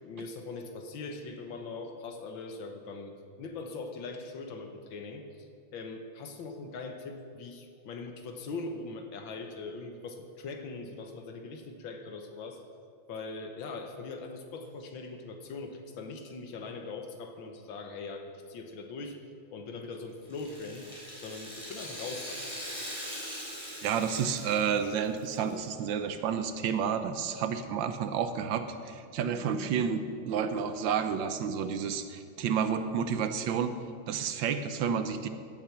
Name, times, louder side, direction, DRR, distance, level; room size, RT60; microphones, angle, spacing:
voice 1, 0.0-3.1 3.4-5.5 5.7-12.6 13.1-19.2 19.5-20.9 21.2-22.4, left 3 dB, 75° left, 5 dB, 1.8 m, -41 dB
Rattle (instrument), 20.3-25.5 25.8-25.9 26.8-26.9, equal, 15° left, 3.3 m, -41 dB
voice 2, 23.8-33.7 34.1-35.3, right 7 dB, 70° right, 9 dB, 1.4 m, -30 dB
14.5 x 8.6 x 6.0 m, 2.3 s
omnidirectional pair, 2.2 m